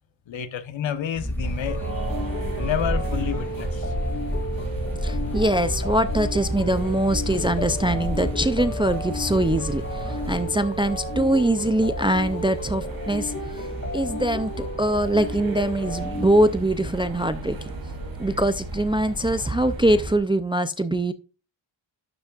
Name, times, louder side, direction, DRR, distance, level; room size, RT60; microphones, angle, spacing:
voice 1, 0.3-1.8 2.6-3.9, left 9 dB, 70° left, 1.1 m, -29 dB
sound 1, 1.1-10.5, equal, 5° left, 2.0 m, -31 dB
sound 2, 1.4-20.2, right 2 dB, 45° right, 2.4 m, -34 dB
sound 3, 1.7-16.6, left 1 dB, 30° left, 1.5 m, -34 dB
voice 2, 5.0-13.7 13.9-17.7 18.2-21.1, right 1 dB, 10° right, 0.3 m, -23 dB
11.5 x 7.0 x 2.4 m
wide cardioid pair, 170°, 47 cm